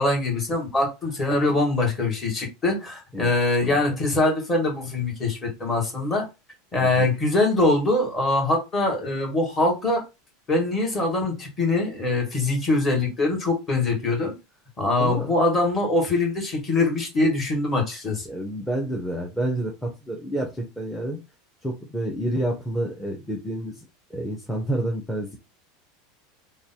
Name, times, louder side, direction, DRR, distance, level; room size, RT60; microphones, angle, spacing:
voice 1, 0.0-6.3 6.7-10.0 10.5-14.4 14.8-18.3, left 2 dB, 20° left, 1.7 m, -23 dB
voice 2, 3.6-4.0 6.8-7.1 15.0-15.3 18.3-21.2 21.6-23.8 24.1-25.4, right 1 dB, 5° left, 0.8 m, -29 dB
3.2 x 2.2 x 4.2 m
supercardioid pair, 155°, 0 cm